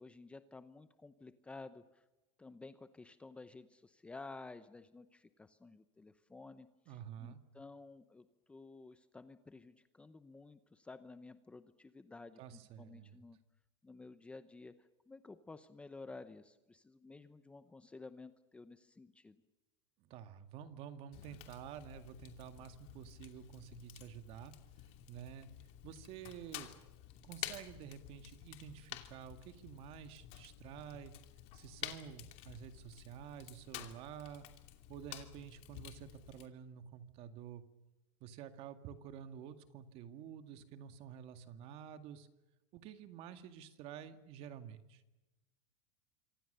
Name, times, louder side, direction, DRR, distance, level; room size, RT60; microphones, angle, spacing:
voice 1, 0.0-2.0 2.4-13.4 13.8-19.4, left 3 dB, 10° left, 11 dB, 0.8 m, -53 dB
voice 2, 6.9-7.4 12.4-13.2 20.1-24.5 25.1-25.5 25.8-26.7 27.2-31.1 31.5-34.5 34.9-37.6 38.2-42.3 42.7-45.0, right 9 dB, 40° right, 9 dB, 2.1 m, -50 dB
Fire, 21.1-36.5, left 14 dB, 45° left, 2.7 m, -51 dB
27.0 x 25.5 x 6.9 m, 1.0 s
supercardioid pair, 155°, 15 cm